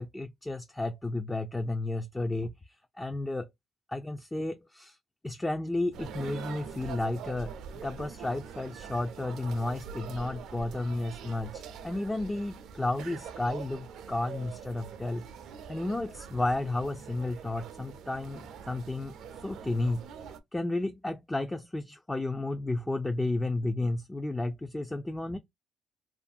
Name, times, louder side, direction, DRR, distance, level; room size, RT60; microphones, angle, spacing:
voice 1, 0.0-2.5 3.0-3.5 3.9-5.0 5.2-7.5 7.8-15.2 15.7-19.2 19.4-20.0 20.5-25.4, left 2 dB, 15° left, 0.3 m, -32 dB
sound 1, 5.9-20.4, right 7 dB, 75° right, 0.4 m, -44 dB
2.6 x 2.5 x 2.4 m
cardioid pair, 80°, 0 cm